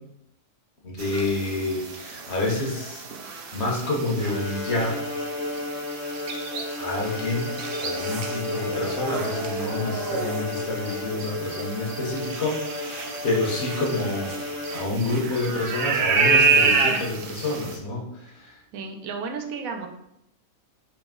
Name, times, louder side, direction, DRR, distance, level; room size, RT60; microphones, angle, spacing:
voice 1, 0.8-5.0 6.8-7.6 7.8-18.5, left 2 dB, 55° left, -1 dB, 1.0 m, -28 dB
sound 1, 1.0-17.8, right 4 dB, 65° right, 0.6 m, -29 dB
Bowed string instrument, 4.2-15.2, left 2 dB, 30° left, 0.5 m, -33 dB
voice 2, 18.7-19.9, right 5 dB, 85° right, 4 dB, 1.0 m, -33 dB
3.2 x 3.0 x 3.6 m, 0.80 s
omnidirectional pair, 1.4 m